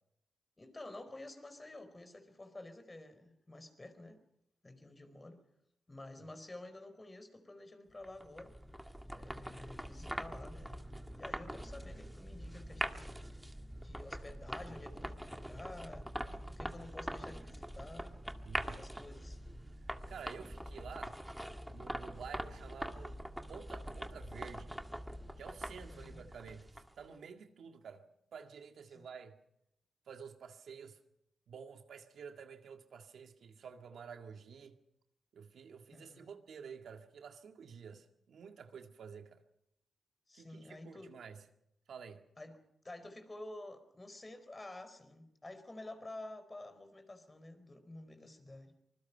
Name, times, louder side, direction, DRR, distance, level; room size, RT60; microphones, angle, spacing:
voice 1, 0.6-4.2 4.6-5.4 5.9-8.5 9.1-10.9 11.2-13.3 13.8-16.1 16.5-18.2 18.7-19.4 25.9-26.3 28.9-29.0 35.9-36.3 40.3-41.1 42.4-42.6 42.8-48.7, left 2 dB, 25° left, 9 dB, 4.4 m, -50 dB
sound 1, 8.0-27.1, equal, 5° right, 1.8 m, -44 dB
voice 2, 18.4-18.8 19.8-21.2 21.7-23.2 23.5-24.8 25.4-28.0 28.3-29.4 30.1-31.0 31.5-34.8 35.3-39.4 40.3-41.4 41.9-42.2, right 6 dB, 75° right, 5 dB, 1.9 m, -50 dB
25.5 x 20.5 x 5.7 m, 0.80 s
cardioid pair, 65°, 0 cm